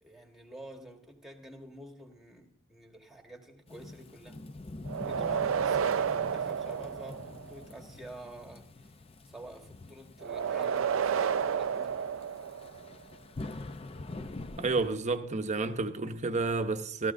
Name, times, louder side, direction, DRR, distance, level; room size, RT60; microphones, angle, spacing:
voice 1, 0.0-4.4 5.0-8.9 9.2-12.1, right 1 dB, ahead, 1.4 m, -48 dB
Thunderstorm / Rain, 3.7-14.9, left 2 dB, 25° left, 0.5 m, -45 dB
sound 1, 4.9-7.6 10.2-12.9, right 7 dB, 65° right, 0.4 m, -31 dB
voice 2, 14.6-17.1, right 3 dB, 35° right, 0.8 m, -30 dB
15.5 x 13.0 x 2.6 m
head